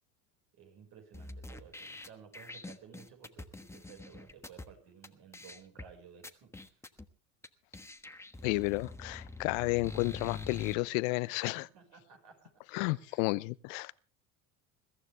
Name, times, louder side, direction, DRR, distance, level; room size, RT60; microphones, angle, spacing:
voice 1, 0.5-6.8 11.6-12.5 12.9-13.3, right 7 dB, 60° right, 5.7 m, -55 dB
sound 1, 1.1-4.7 5.0-5.1 5.3-5.9 6.2-7.0 7.4-7.5 7.7-10.7, left 3 dB, 5° left, 1.3 m, -45 dB
voice 2, 8.4-11.7 12.7-13.9, left 23 dB, 70° left, 0.7 m, -32 dB
21.5 x 14.5 x 3.5 m
hypercardioid pair, 80°, 41 cm